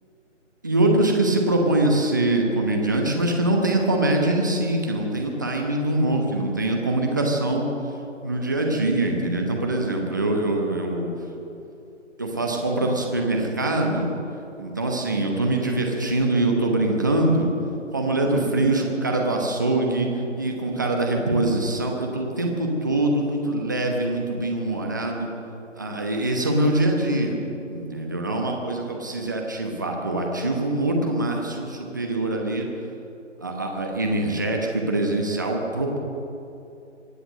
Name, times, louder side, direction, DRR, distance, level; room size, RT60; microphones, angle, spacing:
voice 1, 0.6-7.7 8.2-11.1 12.2-14.1 14.6-17.5 17.9-20.1 20.4-25.3 25.8-27.4 27.7-32.7 33.4-36.0, right 2 dB, 15° right, 1 dB, 1.0 m, -23 dB
24.5 x 8.7 x 6.6 m, 2.7 s
figure-of-eight pair, 165°, 38 cm